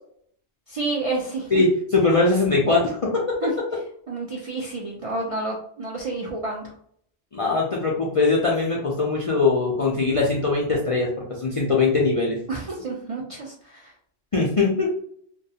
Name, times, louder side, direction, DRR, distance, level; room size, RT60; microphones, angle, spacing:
voice 1, 0.7-1.6 3.4-3.5 4.1-6.7 12.5-13.9, right 3 dB, 60° right, -2 dB, 0.3 m, -29 dB
voice 2, 1.5-3.3 7.3-11.1 11.4-12.4 14.3-14.9, left 3 dB, 55° left, -3 dB, 0.3 m, -21 dB
2.3 x 2.2 x 2.7 m, 0.63 s
omnidirectional pair, 1.2 m